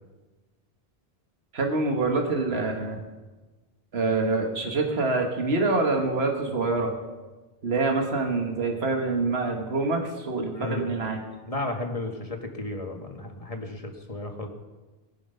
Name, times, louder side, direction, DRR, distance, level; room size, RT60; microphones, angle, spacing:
voice 1, 1.5-3.0 3.9-6.9 7.6-11.2, right 3 dB, 80° right, 2 dB, 1.8 m, -26 dB
voice 2, 10.5-10.9 11.5-14.5, left 2 dB, 35° left, 3 dB, 1.7 m, -33 dB
21.5 x 7.5 x 5.6 m, 1.2 s
omnidirectional pair, 1.0 m